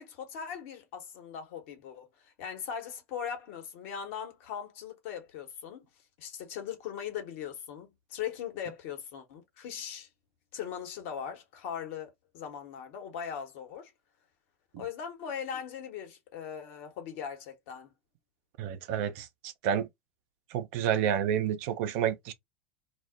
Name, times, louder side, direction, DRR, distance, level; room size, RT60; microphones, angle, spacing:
voice 1, 0.0-5.8 6.2-10.1 10.5-13.9 14.8-17.9, left 8 dB, 65° left, 1.1 m, -40 dB
voice 2, 18.6-19.9 20.5-22.3, right 9 dB, 65° right, 0.6 m, -29 dB
2.4 x 2.0 x 3.6 m
hypercardioid pair, 80°, 8 cm